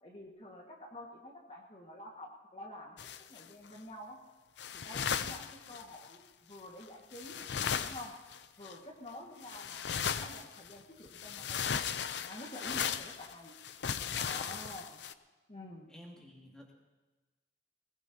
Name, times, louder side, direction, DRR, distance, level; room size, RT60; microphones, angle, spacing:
voice 1, 0.0-4.2 4.7-7.5 7.8-8.2 8.6-11.7 12.2-13.6 14.2-15.0 15.5-15.9, left 1 dB, 35° left, -1 dB, 1.7 m, -49 dB
sound 1, 3.0-3.7 4.6-6.2 6.8-6.9 7.1-8.8 9.4-10.8 11.1-15.1, left 7 dB, 85° left, 0.6 m, -37 dB
voice 2, 15.9-16.7, equal, 5° left, -2 dB, 2.2 m, -53 dB
20.5 x 20.0 x 2.8 m, 1.2 s
head